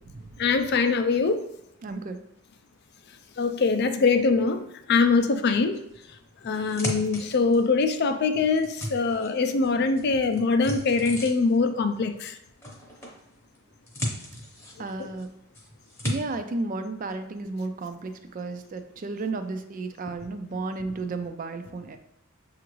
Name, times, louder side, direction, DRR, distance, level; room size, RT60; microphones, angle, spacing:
voice 1, 0.4-1.4 3.4-4.6 4.9-5.8 6.4-12.3 15.0-15.1, left 4 dB, 45° left, 8 dB, 0.4 m, -23 dB
voice 2, 1.8-2.2 14.8-15.3 16.0-22.0, right 3 dB, 35° right, 8 dB, 0.3 m, -33 dB
sound 1, 6.0-7.8 8.3-9.7 10.0-11.7 12.6-13.2 13.5-15.2 15.5-16.2, left 1 dB, 10° left, 0.8 m, -35 dB
6.8 x 2.5 x 3.0 m, 0.79 s
head